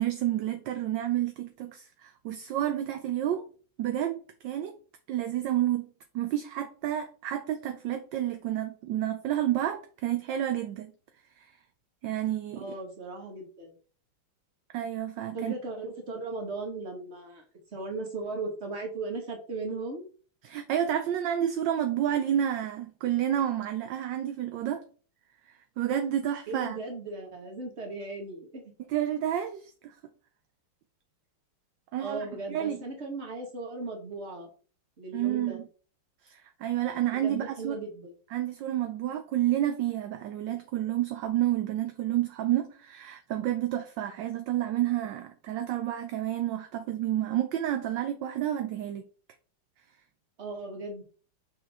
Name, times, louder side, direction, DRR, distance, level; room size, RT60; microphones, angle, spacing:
voice 1, 0.0-3.4 3.8-4.7 5.1-5.9 6.1-10.9 12.0-12.6 14.7-15.5 20.4-24.8 25.8-26.8 28.9-29.9 31.9-32.8 35.1-35.6 36.2-37.8 38.3-49.0, right 11 dB, 70° right, 1.1 m, -30 dB
voice 2, 12.6-13.7 15.3-17.4 17.7-20.1 26.5-28.7 32.0-34.5 35.0-35.6 37.1-38.1 50.4-51.0, right 3 dB, 30° right, 1.8 m, -37 dB
6.4 x 4.6 x 3.6 m
omnidirectional pair, 2.4 m